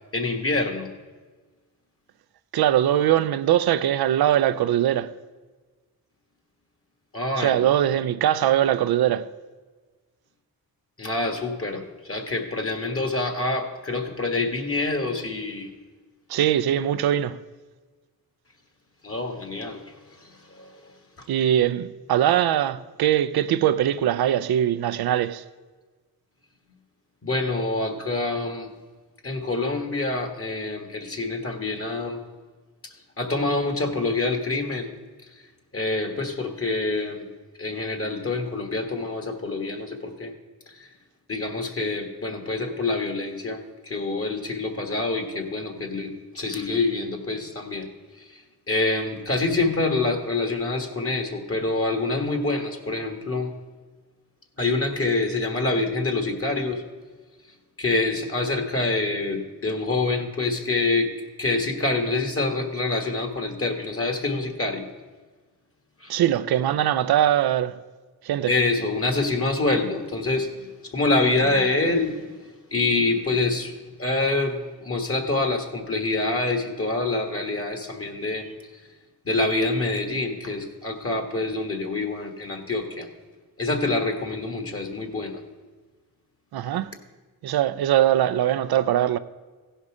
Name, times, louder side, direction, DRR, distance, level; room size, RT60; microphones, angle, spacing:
voice 1, 0.1-0.9 7.1-7.6 11.0-15.7 19.0-19.8 20.5-20.9 27.2-28.7 29.2-32.2 33.2-34.9 35.7-37.3 37.6-40.3 40.8-40.9 41.3-47.9 48.3-53.5 54.6-56.8 57.8-61.1 61.4-64.9 66.0-66.1 68.5-72.2 72.7-78.5 79.2-83.1 83.6-85.4, left 2 dB, 35° left, 1.5 m, -26 dB
voice 2, 2.5-5.1 7.4-9.3 16.3-17.4 21.3-25.4 66.1-67.8 68.2-68.5 86.5-87.0 87.4-89.2, right 11 dB, 80° right, 0.5 m, -21 dB
15.5 x 5.4 x 4.9 m
cardioid pair, 75°, 37 cm